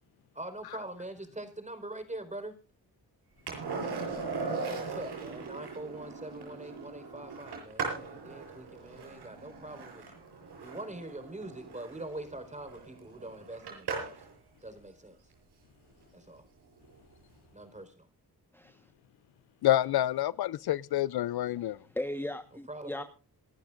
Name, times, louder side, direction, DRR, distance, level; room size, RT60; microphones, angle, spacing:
voice 1, 0.3-2.5 4.4-10.2 10.6-14.1 14.6-15.2 16.1-16.4 17.5-18.1 22.5-23.0, right 1 dB, 20° right, 4.6 m, -43 dB
Skateboard, 3.5-14.3 16.9-17.0, right 4 dB, 80° right, 7.8 m, -39 dB
voice 2, 18.5-18.9 21.6-23.0, left 1 dB, 5° left, 1.2 m, -38 dB
voice 3, 19.6-21.8, left 13 dB, 75° left, 0.6 m, -28 dB
26.5 x 11.5 x 2.5 m
cardioid pair, 65°, 38 cm